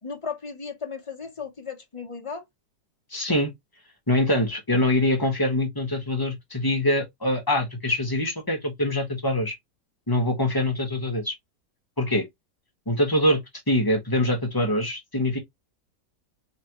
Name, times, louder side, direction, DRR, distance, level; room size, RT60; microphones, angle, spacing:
voice 1, 0.0-2.4, left 5 dB, 55° left, 0.3 m, -35 dB
voice 2, 3.1-3.5 4.1-9.5 10.1-11.3 12.0-12.2 12.9-13.4 13.7-15.4, left 1 dB, 15° left, 1.0 m, -24 dB
4.2 x 3.3 x 2.9 m
omnidirectional pair, 1.9 m